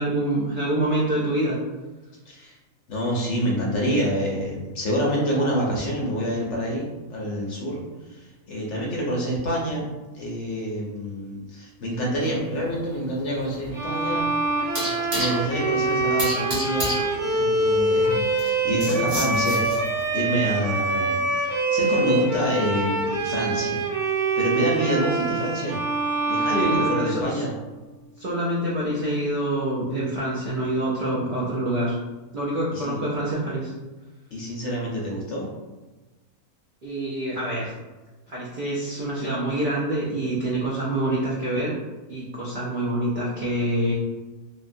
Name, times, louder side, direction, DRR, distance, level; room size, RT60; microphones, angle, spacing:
voice 1, 0.0-1.6 26.5-27.4 28.2-31.9 32.3-33.7 36.8-37.7 38.3-41.8 42.1-43.9, right 1 dB, 65° right, -6 dB, 0.5 m, -26 dB
voice 2, 2.3-2.6 2.9-9.8 10.1-14.3 15.1-17.0 17.3-19.6 20.1-23.9 24.4-25.8 26.2-27.5 32.7-33.0 34.3-35.5, equal, 65° left, -3 dB, 0.8 m, -27 dB
sound 1, 12.3-20.1, equal, 85° right, 1.7 m, -32 dB
Bowed string instrument, 13.7-27.8, right 2 dB, 20° right, 0.5 m, -25 dB
3.1 x 2.2 x 2.5 m, 1.2 s
omnidirectional pair, 1.5 m